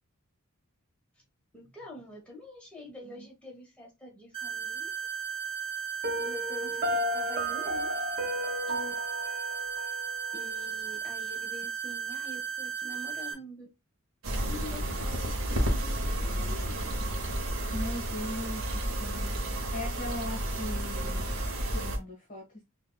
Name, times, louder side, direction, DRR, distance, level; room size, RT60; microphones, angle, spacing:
voice 1, 1.5-4.9 6.1-8.0 8.7-8.9 10.3-13.7 14.3-17.0, left 1 dB, 5° left, -2 dB, 1.2 m, -46 dB
sound 1, 4.3-13.3, right 7 dB, 25° right, 1.1 m, -35 dB
Piano, 6.0-11.0, equal, 45° right, 0.7 m, -34 dB
sound 2, 14.2-22.0, right 1 dB, 70° right, 0.9 m, -31 dB
voice 2, 17.7-21.3 21.7-22.7, left 1 dB, 40° left, -2 dB, 1.4 m, -39 dB
5.5 x 2.4 x 2.3 m, 0.23 s
head